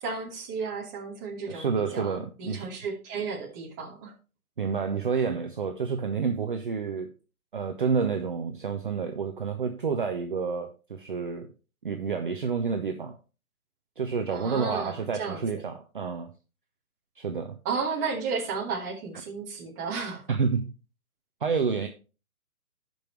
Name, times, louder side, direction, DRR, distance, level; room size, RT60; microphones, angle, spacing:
voice 1, 0.0-4.1 14.3-15.4 17.6-20.2, right 5 dB, 15° right, -2 dB, 1.2 m, -33 dB
voice 2, 1.5-2.7 4.6-7.1 7.5-11.5 11.8-13.2 14.0-16.3 17.2-17.6 20.3-20.7 21.4-21.9, right 5 dB, 35° right, 5 dB, 0.7 m, -29 dB
15.5 x 5.4 x 3.1 m, 0.34 s
hypercardioid pair, 160°, 44 cm